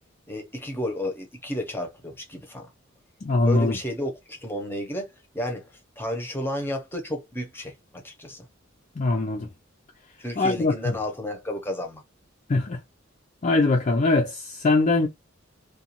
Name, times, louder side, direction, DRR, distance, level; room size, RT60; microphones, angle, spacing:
voice 1, 0.3-2.7 3.5-5.7 6.0-8.4 10.2-12.0, left 1 dB, 10° left, 0.8 m, -32 dB
voice 2, 3.2-3.8 9.0-9.5 10.4-10.7 12.5-12.8 13.4-15.1, left 3 dB, 35° left, 0.4 m, -22 dB
2.5 x 2.3 x 2.8 m
head